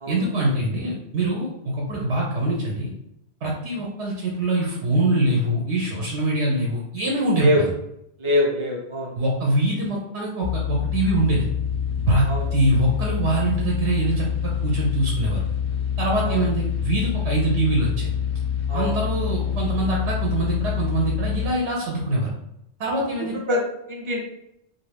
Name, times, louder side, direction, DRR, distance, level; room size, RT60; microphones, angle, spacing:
voice 1, 0.1-2.9 3.4-7.7 9.2-11.5 12.1-15.4 16.0-18.1 18.7-22.3 22.8-23.4, right 1 dB, 80° right, -2 dB, 0.9 m, -24 dB
voice 2, 8.2-9.1 12.3-12.4 16.3-16.4 18.7-18.9 23.5-23.6 23.9-24.2, left 1 dB, 40° right, -1 dB, 0.4 m, -23 dB
sound 1, 10.4-21.5, left 8 dB, 55° left, 0.6 m, -26 dB
2.5 x 2.3 x 3.2 m, 0.80 s
omnidirectional pair, 1.1 m